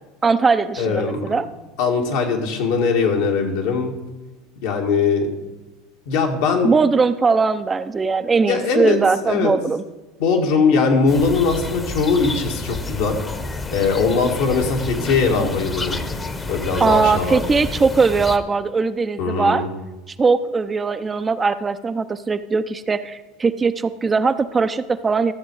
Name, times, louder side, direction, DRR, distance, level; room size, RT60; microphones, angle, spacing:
voice 1, 0.2-1.5 6.6-9.8 16.8-19.6 20.2-25.3, right 4 dB, 20° right, 11 dB, 0.5 m, -20 dB
voice 2, 0.8-1.3 1.8-3.9 4.6-5.3 6.1-6.7 8.5-9.5 10.2-13.2 13.7-16.0 16.5-17.6 19.2-19.7, left 4 dB, 75° left, 1 dB, 2.1 m, -20 dB
sound 1, 11.1-18.4, left 3 dB, 20° left, 0.9 m, -30 dB
13.0 x 7.4 x 4.7 m, 1.1 s
supercardioid pair, 105°, 0 cm